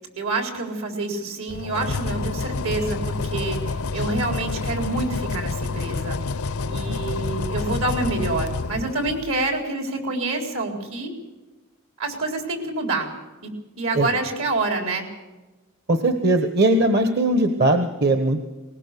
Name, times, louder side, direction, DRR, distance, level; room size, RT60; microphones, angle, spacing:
voice 1, 0.2-6.2 6.7-11.1 12.0-13.1 13.4-13.5 13.8-15.1, right 2 dB, 75° right, 3 dB, 4.1 m, -27 dB
sound 1, 1.5-9.5, left 3 dB, 90° left, 0.7 m, -28 dB
voice 2, 6.8-7.3 13.9-14.1 15.9-18.4, right 2 dB, 50° right, 7 dB, 1.2 m, -20 dB
20.0 x 19.5 x 6.9 m, 1.2 s
head